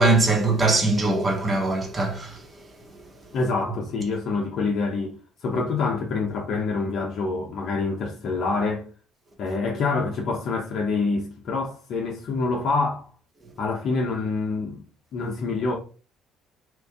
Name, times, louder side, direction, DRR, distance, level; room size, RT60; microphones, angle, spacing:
voice 1, 0.0-2.4, right 2 dB, 25° right, 1.3 m, -21 dB
voice 2, 3.3-5.2 5.4-8.8 9.4-13.1 13.6-14.8 15.1-15.7, left 3 dB, 60° left, 0.8 m, -26 dB
3.0 x 2.6 x 3.6 m
supercardioid pair, 80°, 0 cm